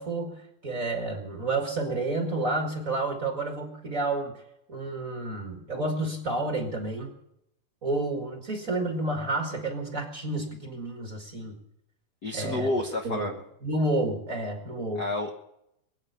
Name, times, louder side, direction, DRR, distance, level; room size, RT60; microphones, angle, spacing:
voice 1, 0.0-4.4 4.7-7.1 7.8-11.6 12.3-12.7 13.0-13.3 13.6-15.0, right 2 dB, 35° right, 3 dB, 1.5 m, -30 dB
voice 2, 12.2-13.3 14.9-15.4, left 2 dB, 80° left, 3 dB, 0.9 m, -29 dB
22.0 x 9.1 x 6.8 m, 0.80 s
omnidirectional pair, 3.7 m